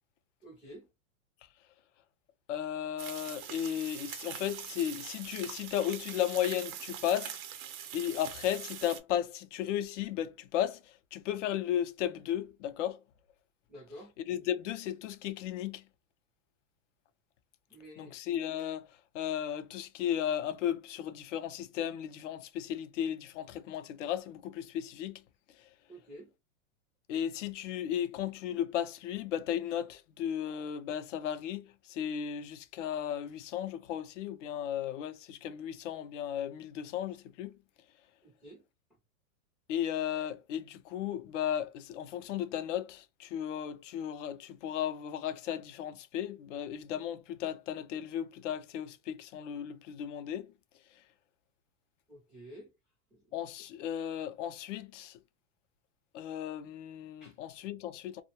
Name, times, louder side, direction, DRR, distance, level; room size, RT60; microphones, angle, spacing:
voice 1, 0.4-0.9 13.7-14.1 17.7-18.1 25.9-26.3 38.2-38.6 52.1-52.7 53.1-53.3 57.2-57.4, equal, ahead, 0.3 m, -50 dB
voice 2, 2.5-7.4 7.9-13.0 14.3-15.9 18.0-25.2 25.6-25.7 27.1-37.6 39.7-50.5 50.9-51.0 53.3-55.2 56.1-58.2, left 10 dB, 60° left, 0.5 m, -35 dB
sound 1, 3.0-9.0, right 9 dB, 80° right, 0.7 m, -43 dB
2.2 x 2.1 x 2.8 m
supercardioid pair, 155°, 41 cm